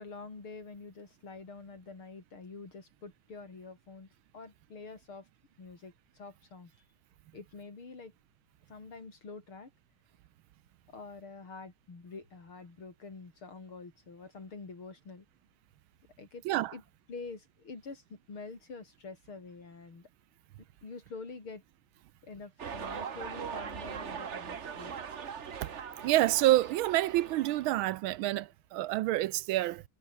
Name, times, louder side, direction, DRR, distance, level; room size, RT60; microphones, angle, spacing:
voice 1, 0.0-4.1 4.3-5.3 5.6-6.7 7.3-8.1 8.7-9.7 10.9-15.3 16.2-16.4 16.7-16.8 17.1-20.1 20.8-21.6 22.2-24.9, left 4 dB, 75° left, 5.4 m, -46 dB
sound 1, 22.6-27.8, right 7 dB, 40° right, 1.2 m, -41 dB
voice 2, 26.0-29.8, right 16 dB, 75° right, 1.4 m, -28 dB
omnidirectional pair, 2.4 m